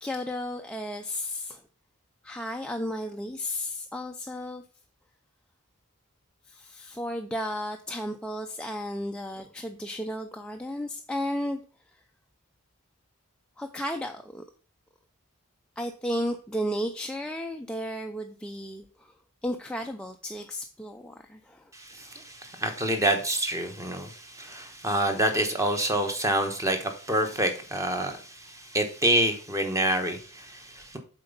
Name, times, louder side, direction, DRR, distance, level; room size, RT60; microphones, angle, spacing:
voice 1, 0.0-1.6 2.2-4.6 6.5-11.6 13.6-14.4 15.8-19.1 19.4-21.7, equal, 5° left, 3 dB, 0.4 m, -33 dB
voice 2, 21.7-31.0, right 1 dB, 15° right, 5 dB, 1.1 m, -27 dB
7.5 x 4.4 x 5.4 m, 0.40 s
head